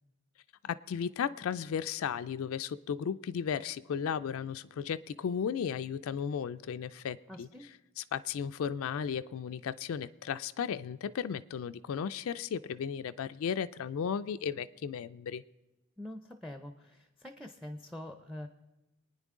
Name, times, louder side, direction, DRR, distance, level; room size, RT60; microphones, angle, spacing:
voice 1, 0.6-7.5 8.0-15.4, left 7 dB, 65° left, 12 dB, 0.3 m, -35 dB
voice 2, 7.3-7.7 16.0-18.5, left 1 dB, ahead, 8 dB, 0.5 m, -45 dB
23.0 x 9.6 x 3.6 m, 1.0 s
head